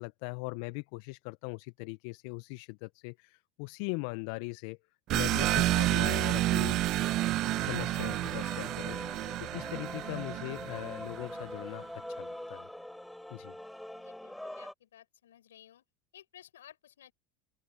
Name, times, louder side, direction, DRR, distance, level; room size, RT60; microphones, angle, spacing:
voice 1, 0.0-4.8 5.1-6.8 7.5-12.7 13.3-13.5, left 28 dB, 65° left, 0.9 m, -40 dB
sound 1, 5.1-11.4, right 16 dB, 50° right, 1.5 m, -30 dB
Male singing / Female singing / Musical instrument, 7.0-14.7, left 1 dB, 5° left, 5.6 m, -44 dB
voice 2, 13.9-15.8 16.1-17.1, left 11 dB, 80° left, 6.8 m, -56 dB
open air
hypercardioid pair, 80°, 0 cm